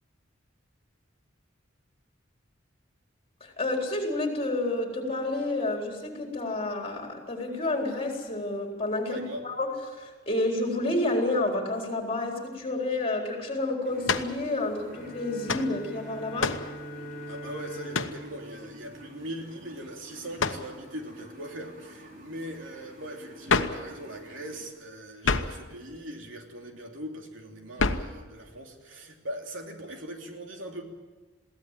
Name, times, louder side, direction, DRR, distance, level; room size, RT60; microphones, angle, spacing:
voice 1, 3.4-16.6, left 2 dB, 30° left, 2 dB, 4.1 m, -30 dB
voice 2, 9.0-9.4 17.3-30.8, equal, 85° right, 3 dB, 3.1 m, -40 dB
sound 1, 13.8-24.7, equal, 45° right, 4.4 m, -49 dB
sound 2, 14.0-14.4 15.5-15.7 16.4-16.7 17.9-18.2 20.4-20.7 23.5-23.8 25.2-25.6 27.8-28.1, left 4 dB, 80° left, 1.1 m, -27 dB
Bowed string instrument, 14.9-19.8, equal, 5° left, 7.3 m, -43 dB
22.0 x 16.5 x 9.1 m, 1.3 s
head